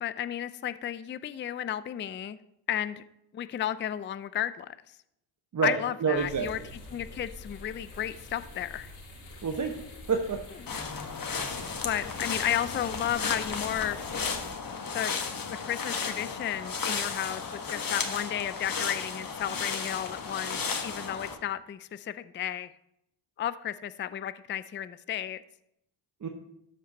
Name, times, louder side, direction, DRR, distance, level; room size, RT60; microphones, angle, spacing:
voice 1, 0.0-2.4 2.7-3.0 3.3-4.8 5.6-6.6 6.9-8.9 11.8-14.2 14.9-15.1 15.6-22.7 23.4-25.4, left 10 dB, 25° left, 14 dB, 0.4 m, -33 dB
voice 2, 5.5-6.5 9.4-9.8 10.1-10.4 10.7-10.9 26.2-26.3, right 5 dB, 35° right, 4 dB, 1.0 m, -28 dB
sound 1, 6.1-14.5, left 1 dB, 85° left, 3.0 m, -46 dB
sound 2, 10.7-21.3, left 5 dB, 45° left, 1.4 m, -34 dB
13.0 x 5.1 x 4.1 m, 0.81 s
supercardioid pair, 60°, 49 cm